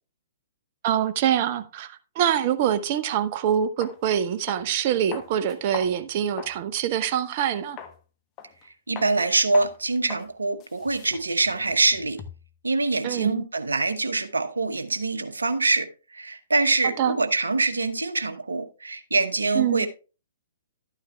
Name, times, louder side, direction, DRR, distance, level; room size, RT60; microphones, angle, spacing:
voice 1, 0.8-7.8 13.0-13.4 16.8-17.2 19.5-19.9, right 9 dB, 40° right, 0.7 m, -25 dB
sound 1, 3.2-3.3 3.8-4.0 4.5-4.7 5.1-6.6 7.0-7.2 7.8-8.0 8.4-8.7 9.0-9.1 9.5-9.8 10.1-10.3 10.6-12.5, left 8 dB, 25° left, 1.1 m, -40 dB
voice 2, 8.9-12.2 12.6-15.9 16.1-19.9, right 3 dB, 75° right, 0.9 m, -24 dB
12.0 x 9.1 x 2.3 m
figure-of-eight pair, 120°, 0 cm